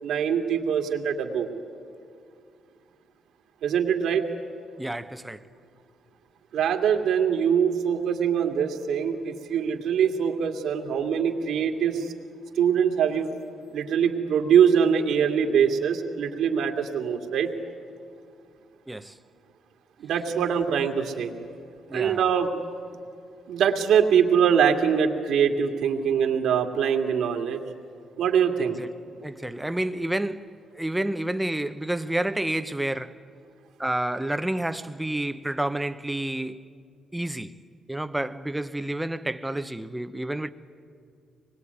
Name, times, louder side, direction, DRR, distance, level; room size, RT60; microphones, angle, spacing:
voice 1, 0.0-1.5 3.6-4.2 6.5-12.1 12.6-13.3 13.7-17.5 20.0-21.3 21.9-22.5 23.5-27.6 28.2-28.8, right 7 dB, 75° right, 2.3 m, -23 dB
voice 2, 4.8-5.4 18.9-19.2 21.9-22.2 28.6-28.9 29.2-33.2 33.8-36.7 37.1-37.6 37.9-40.5, right 1 dB, 10° right, 1.0 m, -29 dB
24.5 x 21.5 x 9.6 m
cardioid pair, 90°, 0 cm